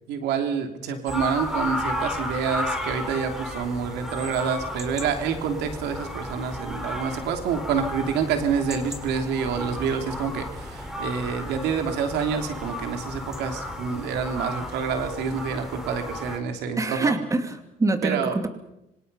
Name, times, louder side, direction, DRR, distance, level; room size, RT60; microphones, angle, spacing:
voice 1, 0.1-17.1 18.0-18.4, right 6 dB, 85° right, 6 dB, 3.1 m, -27 dB
sound 1, 1.1-16.4, left 1 dB, 5° right, 4.4 m, -33 dB
voice 2, 16.8-18.5, right 2 dB, 20° right, 7 dB, 2.6 m, -25 dB
26.5 x 24.5 x 5.6 m, 0.89 s
cardioid pair, 110°, 17 cm